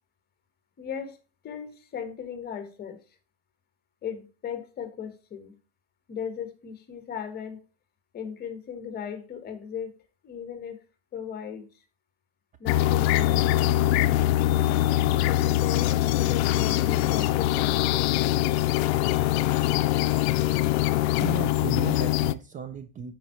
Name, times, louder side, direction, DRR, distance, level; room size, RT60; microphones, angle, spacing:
voice 1, 0.8-3.0 4.0-5.6 6.1-7.6 8.1-9.9 10.2-10.8 11.1-11.7 12.6-13.4 14.4-18.2, left 8 dB, 30° left, 1.3 m, -37 dB
sound 1, 12.7-22.3, left 15 dB, 80° left, 0.5 m, -23 dB
sound 2, 16.2-20.6, left 11 dB, 45° left, 0.7 m, -38 dB
voice 2, 21.2-23.1, right 6 dB, 25° right, 0.5 m, -35 dB
9.1 x 4.6 x 4.3 m
supercardioid pair, 140°, 31 cm